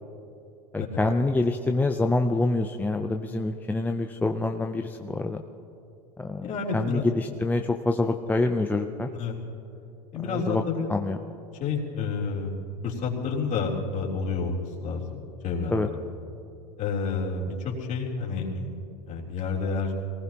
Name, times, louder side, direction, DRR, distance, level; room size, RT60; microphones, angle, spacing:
voice 1, 0.7-5.4 6.2-6.4 6.7-9.1 10.2-10.6 10.9-11.2 15.7-15.9, left 2 dB, 10° left, 4 dB, 0.6 m, -26 dB
voice 2, 6.4-7.0 9.2-9.3 10.1-10.9 11.6-12.6 12.8-15.8 16.8-18.7 19.1-19.9, left 4 dB, 35° left, -3 dB, 3.5 m, -29 dB
23.0 x 19.0 x 3.0 m, 2.8 s
hypercardioid pair, 100°, 21 cm